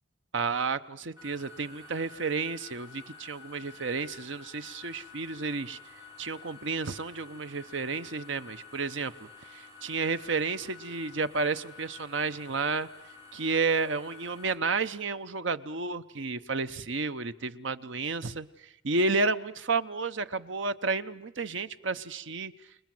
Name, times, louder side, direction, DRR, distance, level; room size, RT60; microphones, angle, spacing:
voice 1, 0.3-5.8 6.2-12.9 13.3-22.5, right 4 dB, 65° right, 12 dB, 0.8 m, -31 dB
sound 1, 1.2-14.5, left 5 dB, 15° right, 4.4 m, -50 dB
28.5 x 20.5 x 7.7 m, 0.87 s
head